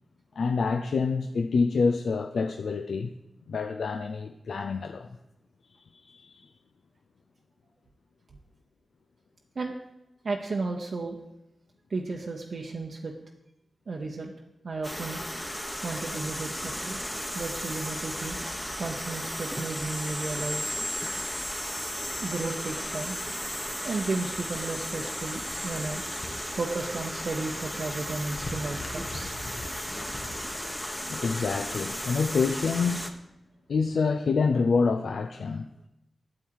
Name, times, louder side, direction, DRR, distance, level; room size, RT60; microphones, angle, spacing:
voice 1, 0.4-3.1 3.5-5.1 6.0-6.5 31.1-33.1 33.7-35.9, left 4 dB, 80° left, 0.4 m, -27 dB
voice 2, 10.2-11.2 11.9-13.1 13.9-14.3 14.6-15.2 15.8-17.1 17.3-18.4 18.8-20.7 22.2-23.2 23.8-26.0 26.6-29.3, right 3 dB, 70° right, 0.8 m, -33 dB
sound 1, 14.8-33.1, equal, 10° left, 1.0 m, -35 dB
sound 2, 17.7-30.5, left 1 dB, 50° left, 1.4 m, -47 dB
8.8 x 7.2 x 4.7 m
cardioid pair, 40°, 0 cm